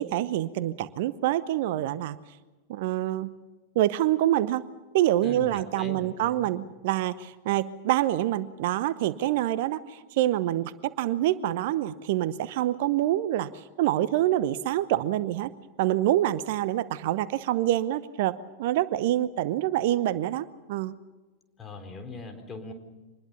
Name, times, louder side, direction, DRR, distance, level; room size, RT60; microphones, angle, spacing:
voice 1, 0.0-2.2 2.7-3.3 3.8-4.6 4.9-10.7 11.0-15.5 15.8-20.9, right 13 dB, 50° right, 17 dB, 0.8 m, -26 dB
voice 2, 5.2-6.5 21.6-22.7, left 2 dB, 20° left, 5 dB, 4.2 m, -40 dB
25.5 x 20.5 x 7.0 m, 1.2 s
figure-of-eight pair, 90°, 0 cm